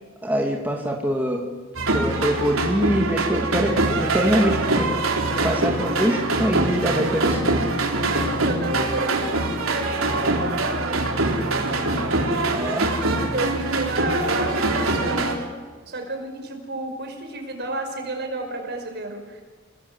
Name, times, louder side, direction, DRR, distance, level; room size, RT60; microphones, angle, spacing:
voice 1, 0.2-1.5 1.9-4.9 5.4-7.5 12.5-12.9, equal, 10° right, 0 dB, 2.5 m, -24 dB
sound 1, 1.7-15.4, right 2 dB, 80° right, 4.0 m, -23 dB
voice 2, 8.4-11.0 13.3-15.5 15.9-19.4, right 2 dB, 55° right, 4 dB, 5.6 m, -31 dB
29.5 x 19.5 x 8.2 m, 1.4 s
head